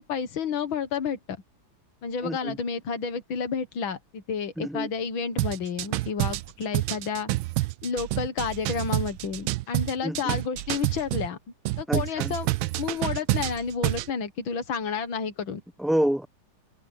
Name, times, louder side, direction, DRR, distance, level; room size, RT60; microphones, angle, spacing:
voice 1, 0.0-1.4 2.0-7.3 7.8-11.4 11.8-12.5 12.8-15.6, left 6 dB, 80° left, 2.2 m, -30 dB
voice 2, 2.2-2.6 4.6-4.9 10.0-10.3 11.9-12.3 15.8-16.3, right 1 dB, ahead, 0.6 m, -27 dB
sound 1, 5.4-11.3 11.7-14.1, right 17 dB, 85° right, 1.4 m, -28 dB
omnidirectional pair, 2.2 m